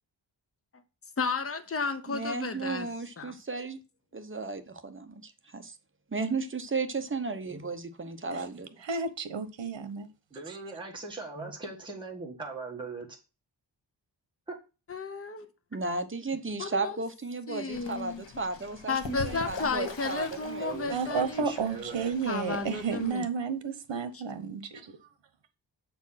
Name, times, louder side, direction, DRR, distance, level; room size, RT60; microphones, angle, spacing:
voice 1, 1.2-2.9 3.2-3.4 14.9-15.5 16.6-17.0 17.5-18.2 18.9-21.6 22.3-23.2, left 4 dB, 30° left, 0.9 m, -33 dB
voice 2, 2.1-3.8 4.1-5.7 6.1-8.7 11.4-11.5 15.7-20.9, right 3 dB, 30° right, 0.9 m, -34 dB
voice 3, 8.8-10.1 10.5-10.6 20.9-25.1, right 5 dB, 75° right, 1.1 m, -32 dB
voice 4, 10.3-13.1 20.6-22.1, right 3 dB, 10° right, 1.7 m, -40 dB
Fowl / Bird, 17.7-23.1, left 6 dB, 75° left, 1.3 m, -44 dB
7.4 x 4.4 x 5.7 m
wide cardioid pair, 125°, 44 cm